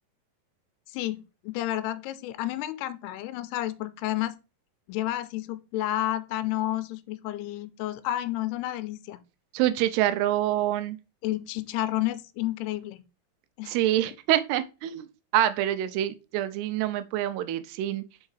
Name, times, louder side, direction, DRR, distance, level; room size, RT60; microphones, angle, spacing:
voice 1, 0.9-4.4 4.9-9.2 11.2-13.0 13.6-13.8, left 14 dB, 85° left, 2.6 m, -31 dB
voice 2, 9.5-11.0 13.7-15.1 15.3-18.0, right 13 dB, 90° right, 2.7 m, -26 dB
5.3 x 4.7 x 4.8 m
omnidirectional pair, 4.6 m